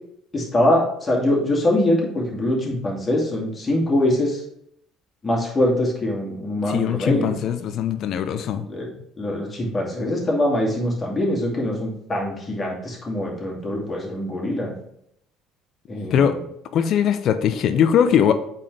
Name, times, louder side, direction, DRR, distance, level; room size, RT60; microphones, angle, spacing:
voice 1, 0.3-4.4 5.2-7.3 8.7-8.9 9.2-14.7 15.9-16.4, left 1 dB, 25° left, -2 dB, 2.5 m, -23 dB
voice 2, 6.7-8.6 16.0-16.3 16.7-18.3, left 8 dB, 50° left, 10 dB, 0.6 m, -20 dB
8.4 x 4.3 x 3.3 m, 0.73 s
figure-of-eight pair, 55°, 0 cm